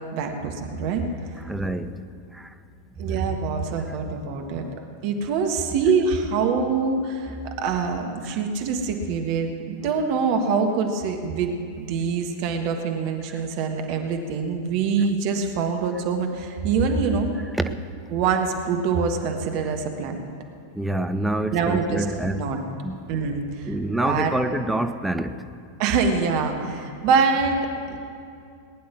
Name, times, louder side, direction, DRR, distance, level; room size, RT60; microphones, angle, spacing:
voice 1, 0.1-1.0 3.0-4.7 5.0-17.3 18.1-20.2 21.5-22.6 23.1-23.7 24.0-24.3 25.8-27.6 27.9-28.0, right 5 dB, 45° right, 4 dB, 1.4 m, -24 dB
voice 2, 1.4-2.0 2.3-2.5 8.3-8.4 13.3-13.4 17.6-17.8 19.7-19.8 20.7-22.5 22.8-23.0 23.7-25.5 26.6-26.7, right 1 dB, 5° right, 9 dB, 0.6 m, -27 dB
19.5 x 10.0 x 6.1 m, 2.4 s
figure-of-eight pair, 90°, 0 cm